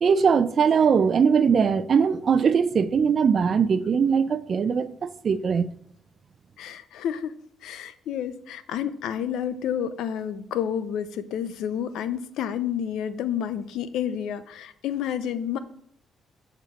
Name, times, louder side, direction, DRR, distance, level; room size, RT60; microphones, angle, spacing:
voice 1, 0.0-5.7, right 6 dB, 50° right, 0.5 m, -21 dB
voice 2, 6.6-7.3 7.6-15.6, left 9 dB, 85° left, 0.6 m, -30 dB
7.0 x 4.4 x 6.2 m
cardioid pair, 90°, 0 cm